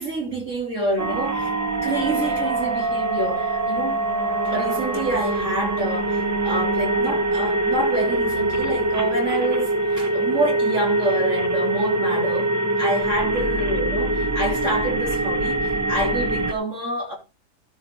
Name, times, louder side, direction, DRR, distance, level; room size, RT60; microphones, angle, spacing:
voice 1, 0.0-1.5 1.8-4.0 4.4-12.5 12.8-17.1, right 1 dB, 45° right, 3.5 m, -27 dB
sound 1, 1.0-16.5, right 2 dB, 15° right, 0.6 m, -23 dB
sound 2, 1.9-9.7, right 6 dB, 70° right, 1.5 m, -35 dB
14.0 x 6.2 x 4.6 m
omnidirectional pair, 1.8 m